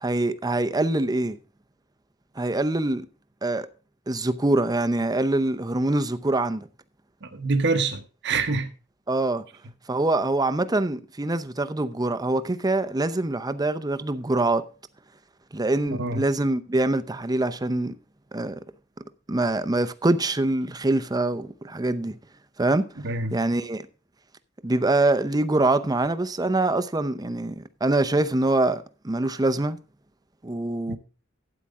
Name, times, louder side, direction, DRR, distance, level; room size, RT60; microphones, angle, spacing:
voice 1, 0.0-1.4 2.4-3.1 3.4-3.7 4.1-6.7 9.1-9.4 9.9-14.6 15.5-17.9 18.3-18.6 19.3-22.2 22.6-22.9 23.3-23.9 24.6-29.8 30.4-31.0, right 2 dB, 20° right, 0.7 m, -24 dB
voice 2, 7.2-8.7 15.9-16.3 23.0-23.4 30.9-31.0, right 3 dB, 60° right, 1.1 m, -26 dB
12.5 x 9.1 x 3.7 m
head